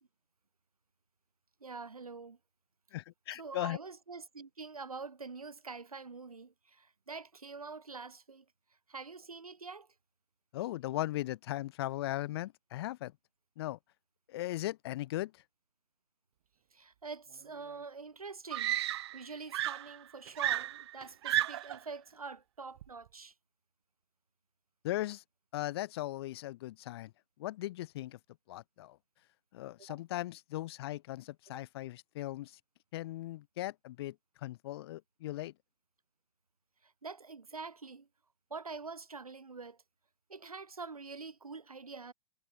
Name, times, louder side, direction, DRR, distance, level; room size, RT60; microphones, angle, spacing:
voice 1, 1.6-2.4 3.3-8.4 8.9-9.9 16.7-18.8 19.1-23.3 29.9-30.0 36.8-38.1 38.5-39.8 40.3-42.1, right 4 dB, 75° right, 3.7 m, -45 dB
voice 2, 2.9-3.8 10.5-13.1 13.6-13.8 14.3-15.3 24.8-25.2 25.5-27.1 27.4-28.2 28.5-29.0 29.5-32.5 32.9-34.2 34.4-35.5, left 15 dB, 45° left, 0.7 m, -38 dB
Screaming, 17.7-17.8 18.5-19.3 19.5-21.8 22.8-23.1, right 13 dB, 45° right, 0.5 m, -33 dB
figure-of-eight pair, 105°, 19 cm